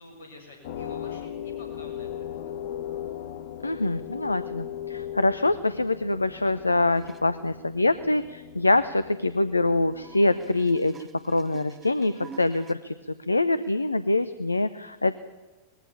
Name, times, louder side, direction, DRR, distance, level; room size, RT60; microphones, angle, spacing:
voice 1, 0.0-2.5, left 1 dB, 65° left, 3 dB, 7.2 m, -48 dB
sound 1, 0.6-10.8, left 10 dB, 50° left, 1.1 m, -38 dB
voice 2, 3.6-15.2, left 2 dB, 80° left, 14 dB, 0.7 m, -25 dB
sound 2, 6.9-7.2 9.9-12.8 13.6-13.7, right 6 dB, 20° right, 1.3 m, -48 dB
20.5 x 15.5 x 8.8 m, 1.2 s
figure-of-eight pair, 90°, 0 cm